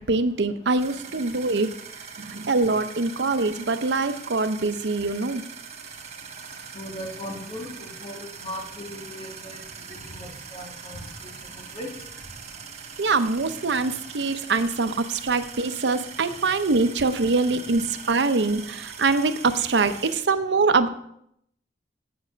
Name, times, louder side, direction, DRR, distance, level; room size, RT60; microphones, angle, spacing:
voice 1, 0.0-1.7 2.2-5.4 13.0-20.9, right 3 dB, 90° right, 10 dB, 0.7 m, -24 dB
sound 1, 0.8-20.2, right 6 dB, 35° right, 1.2 m, -42 dB
voice 2, 6.8-8.6 8.9-9.6 10.1-11.0 11.7-11.9, left 1 dB, 35° left, 1 dB, 1.8 m, -37 dB
8.8 x 7.8 x 5.1 m, 0.72 s
head